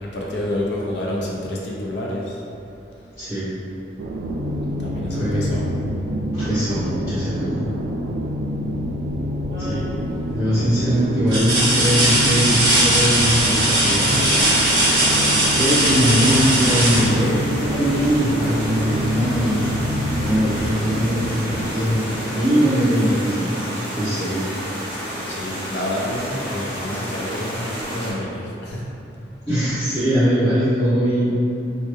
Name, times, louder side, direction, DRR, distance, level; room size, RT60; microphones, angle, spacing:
voice 1, 0.0-2.4 4.8-5.6 25.3-28.8, left 1 dB, 70° left, -3 dB, 0.6 m, -28 dB
voice 2, 3.2-3.5 5.1-5.5 6.3-7.6 9.6-9.8 10.3-14.2 15.5-19.8 20.2-23.5 23.8-24.5 29.5-31.3, equal, 30° left, -22 dB, 1.4 m, -21 dB
sound 1, 4.0-22.6, equal, 85° right, 0.3 m, -27 dB
sound 2, 9.5-10.0 10.6-10.7 11.3-18.0 19.7-19.9 20.3-21.4 22.7-22.8, right 1 dB, 25° right, 0.6 m, -20 dB
sound 3, 14.0-28.1, equal, 10° left, 1.1 m, -31 dB
3.2 x 2.1 x 3.2 m, 2.8 s
head